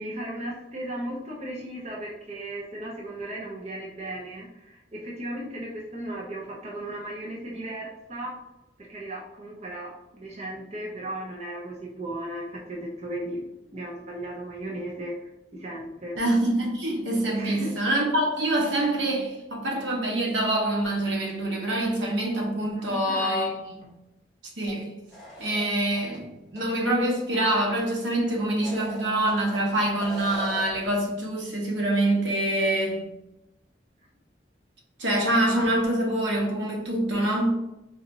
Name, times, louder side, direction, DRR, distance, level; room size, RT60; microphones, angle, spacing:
voice 1, 0.0-8.4 8.9-13.5 13.7-16.2 17.3-17.7 22.8-23.6, right 1 dB, 35° right, 0.6 m, -36 dB
voice 2, 16.2-23.5 24.6-24.9 25.4-33.0 35.0-37.5, right 1 dB, 80° right, 0.9 m, -25 dB
sound 1, 25.1-26.2 26.6-26.7 28.5-29.6 30.0-30.9, right 1 dB, 5° left, 1.3 m, -39 dB
3.9 x 2.9 x 2.6 m
head